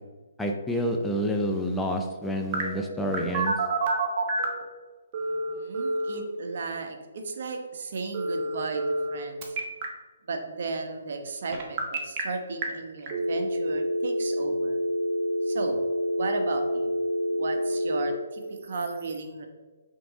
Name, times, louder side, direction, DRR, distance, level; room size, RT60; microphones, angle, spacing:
voice 1, 0.4-3.5, equal, 5° left, 2 dB, 0.5 m, -28 dB
Telephone, 2.5-4.6 5.1-6.1 8.1-9.1 9.4-9.8 11.5-12.2 12.6-12.7 13.1-18.1, right 1 dB, 30° right, 1.2 m, -28 dB
voice 2, 5.2-8.8 9.1-9.6 10.3-14.8 15.4-15.8 16.2-16.9 17.3-19.5, right 3 dB, 60° right, 5 dB, 1.0 m, -35 dB
5.8 x 3.8 x 5.0 m, 1.3 s
hypercardioid pair, 150°, 0 cm